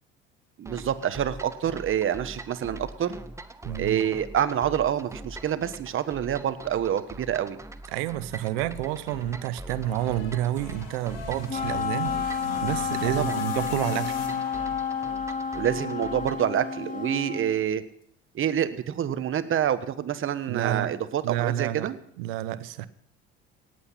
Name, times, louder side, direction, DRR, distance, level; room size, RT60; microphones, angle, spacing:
voice 1, 0.6-3.2 3.8-7.6 13.1-13.4 15.5-17.8 18.3-22.0, right 10 dB, 45° right, 1.2 m, -27 dB
sound 1, 0.7-16.5, right 1 dB, 10° right, 0.9 m, -43 dB
voice 2, 3.6-4.1 7.9-14.2 20.5-20.9 21.2-21.9 22.2-22.9, right 13 dB, 85° right, 0.8 m, -29 dB
sound 2, 8.0-16.3, left 6 dB, 85° left, 2.0 m, -41 dB
Wind instrument woodwind instrument, 11.4-17.6, left 6 dB, 30° left, 2.5 m, -31 dB
18.0 x 8.3 x 5.7 m
supercardioid pair, 80°, 29 cm